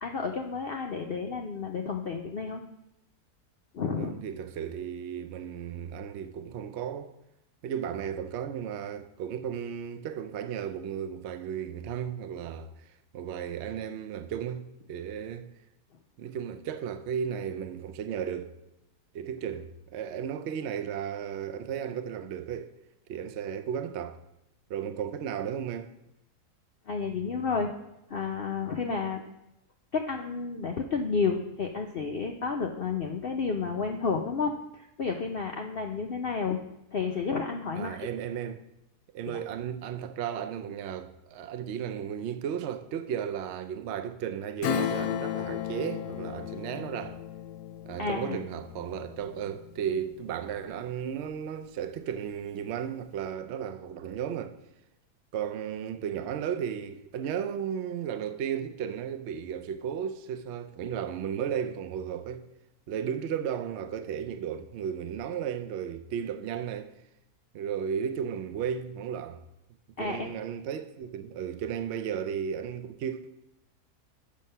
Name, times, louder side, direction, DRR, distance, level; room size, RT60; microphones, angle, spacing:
voice 1, 0.0-2.6 3.7-4.2 26.9-27.7 28.1-29.2 29.9-36.6 36.9-38.1 39.3-39.4 48.0-48.5 70.0-70.3, left 5 dB, 65° left, 0.5 m, -31 dB
voice 2, 4.0-7.1 7.6-12.7 13.1-15.5 16.2-18.5 19.1-22.7 23.1-24.2 24.7-25.9 37.8-38.6 39.1-47.2 47.9-54.6 55.3-62.4 62.9-67.0 67.5-69.4 70.0-73.3, right 8 dB, 70° right, 0.6 m, -34 dB
Acoustic guitar / Strum, 44.6-50.8 51.2-51.3, left 10 dB, 85° left, 1.1 m, -35 dB
7.5 x 7.2 x 5.4 m
omnidirectional pair, 1.7 m